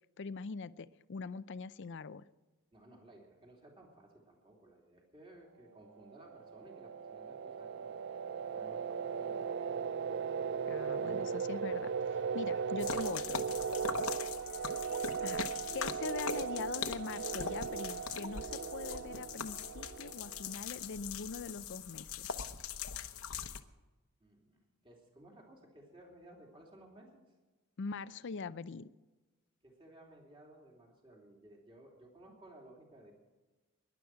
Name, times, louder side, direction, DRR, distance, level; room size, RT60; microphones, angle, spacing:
voice 1, 0.2-2.2 10.7-13.5 15.0-15.4 15.7-22.3 27.8-28.9, left 4 dB, 55° left, 15 dB, 0.5 m, -43 dB
voice 2, 2.7-8.0 8.5-9.6 13.8-14.0 24.2-27.2 29.6-33.1, right 1 dB, 25° right, 0 dB, 3.0 m, -58 dB
sound 1, 6.1-20.7, right 6 dB, 50° right, 0.4 m, -38 dB
sound 2, 12.8-23.6, left 6 dB, 70° left, 1.0 m, -41 dB
22.0 x 11.0 x 4.8 m, 1.2 s
head